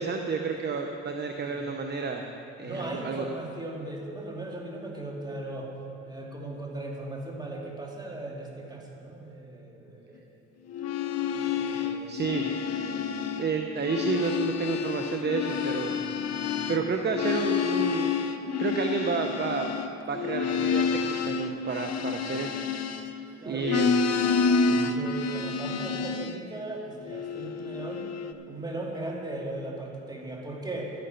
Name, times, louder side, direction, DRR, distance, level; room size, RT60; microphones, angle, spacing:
voice 1, 0.0-2.2 2.6-3.2 11.8-12.5 13.3-16.0 16.7-18.2 18.6-19.7 20.1-22.6 23.5-24.0 24.7-25.0, right 5 dB, 35° right, 4 dB, 0.8 m, -30 dB
voice 2, 2.6-5.7 6.0-10.3 11.5-12.4 12.7-13.2 16.3-16.7 23.4-23.7 24.7-28.1 28.5-30.9, right 1 dB, 15° right, -1 dB, 2.5 m, -38 dB
sound 1, 10.7-13.5 13.8-23.3 23.6-26.4 27.0-28.3, left 5 dB, 55° left, 0.8 m, -29 dB
12.5 x 10.5 x 5.8 m, 2.9 s
cardioid pair, 90°, 30 cm